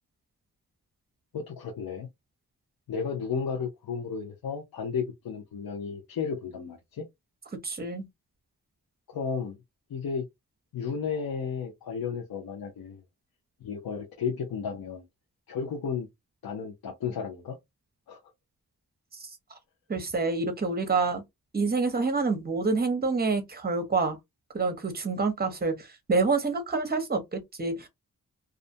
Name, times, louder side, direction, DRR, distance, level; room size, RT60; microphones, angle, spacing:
voice 1, 1.3-2.1 2.9-7.1 9.1-9.6 9.9-10.2 10.7-13.0 13.6-15.0 15.5-16.1 16.4-17.6 18.1-18.2, left 6 dB, 80° left, 0.7 m, -33 dB
voice 2, 7.6-8.0 19.2-19.3 19.9-21.2 21.5-24.2 24.5-27.9, right 4 dB, 25° right, 0.7 m, -27 dB
2.5 x 2.1 x 2.6 m
wide cardioid pair, 75°, 35 cm